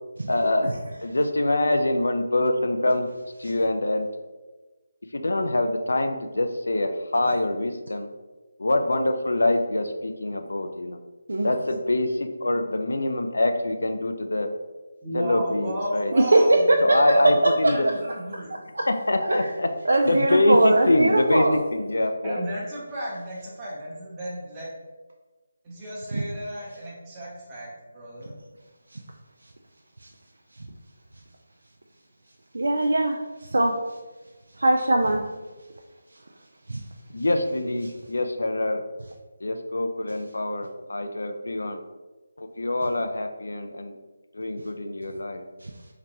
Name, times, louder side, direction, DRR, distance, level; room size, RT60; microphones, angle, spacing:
voice 1, 0.3-0.7 1.0-3.1 3.4-4.1 5.1-8.1 8.6-11.0 11.4-14.5 15.1-16.1 16.8-17.9 18.9-19.7 20.1-21.5 21.7-22.4 37.1-38.8 39.4-41.8 42.4-43.9 44.3-45.4, left 1 dB, 85° left, 6 dB, 0.4 m, -25 dB
voice 2, 15.0-17.3 17.6-18.5 22.2-24.7 25.6-28.3, right 1 dB, 15° right, -7 dB, 0.8 m, -34 dB
voice 3, 16.1-16.8 18.8-18.9 19.2-19.5 19.9-21.6 26.1-26.2 32.5-33.2 33.5-33.7 34.6-35.2 36.7-36.8 45.6-45.7, right 2 dB, 85° right, 1 dB, 0.3 m, -20 dB
3.9 x 2.2 x 2.9 m, 1.2 s
figure-of-eight pair, 165°, 0 cm